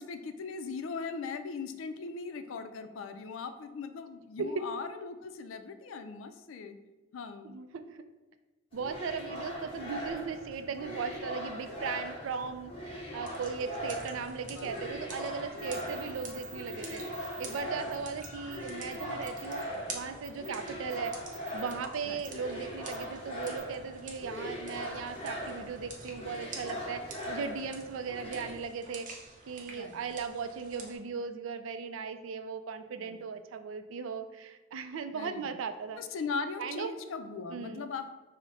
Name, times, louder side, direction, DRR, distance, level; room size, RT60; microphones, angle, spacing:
voice 1, 0.0-6.8 7.1-7.6 14.5-14.7 22.0-22.2 29.7-30.0 33.0-33.2 35.1-35.6 36.0-38.1, left 4 dB, 90° left, 8 dB, 0.4 m, -39 dB
voice 2, 7.4-8.0 8.7-19.6 19.9-21.1 21.5-29.1 29.5-36.0 36.6-36.9 37.5-37.8, right 5 dB, 85° right, 9 dB, 0.4 m, -38 dB
sound 1, 8.7-28.5, equal, 30° left, 1.0 m, -40 dB
sound 2, 13.3-31.0, right 3 dB, 40° right, 0.6 m, -49 dB
sound 3, 15.6-17.6 17.9-18.0 18.2-18.6 18.9-19.6 20.2-20.5 20.9-21.7 22.2-22.3 22.9-23.0 23.4-23.6, right 5 dB, 5° right, 1.0 m, -49 dB
4.9 x 2.1 x 3.9 m, 1.2 s
head